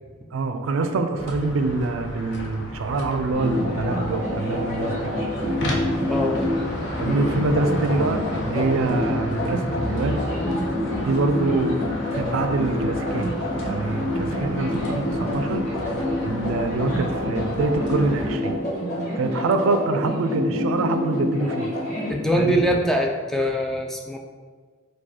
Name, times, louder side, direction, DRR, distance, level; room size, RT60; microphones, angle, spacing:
voice 1, 0.3-5.1 7.0-10.2 11.0-11.8 12.1-13.3 13.6-15.6 16.2-18.6 19.2-21.7 22.4-22.6, right 3 dB, 70° right, 7 dB, 0.4 m, -25 dB
sound 1, 1.2-18.4, left 1 dB, 60° left, 0.7 m, -32 dB
sound 2, 3.3-22.1, left 1 dB, 35° left, 1.2 m, -27 dB
voice 2, 22.1-24.2, equal, ahead, 1 dB, 0.3 m, -22 dB
4.7 x 2.3 x 4.2 m, 1.5 s
head